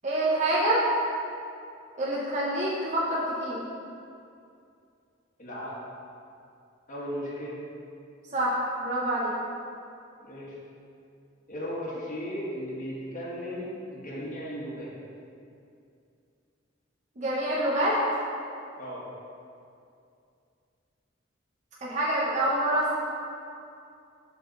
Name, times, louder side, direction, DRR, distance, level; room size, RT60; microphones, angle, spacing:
voice 1, 0.0-0.9 2.0-3.6 8.3-9.3 17.2-18.0 21.8-23.0, right 1 dB, 40° right, -7 dB, 1.0 m, -26 dB
voice 2, 5.4-5.7 6.9-7.6 10.2-10.6 11.5-14.9 18.8-19.0, equal, 45° left, -6 dB, 1.4 m, -36 dB
6.5 x 3.9 x 6.2 m, 2.5 s
head